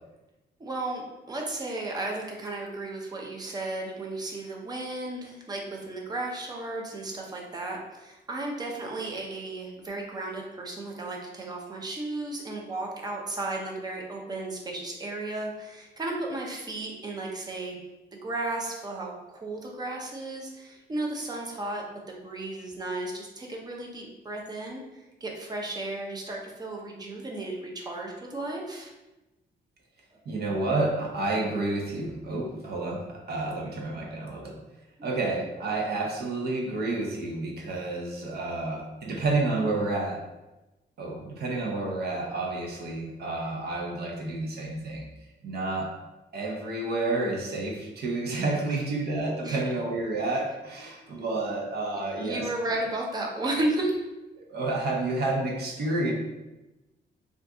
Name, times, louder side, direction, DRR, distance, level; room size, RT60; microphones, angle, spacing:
voice 1, 0.6-1.0 1.3-17.8 18.2-28.9 48.7-48.8 49.4-49.6 51.9-54.0, right 2 dB, 20° right, -1 dB, 0.6 m, -34 dB
voice 2, 30.3-34.6 35.0-40.2 41.0-45.1 45.4-45.9 46.3-52.5 54.4-56.1, right 2 dB, 60° right, 0 dB, 0.7 m, -30 dB
2.6 x 2.4 x 3.5 m, 1.1 s
cardioid pair, 130°, 18 cm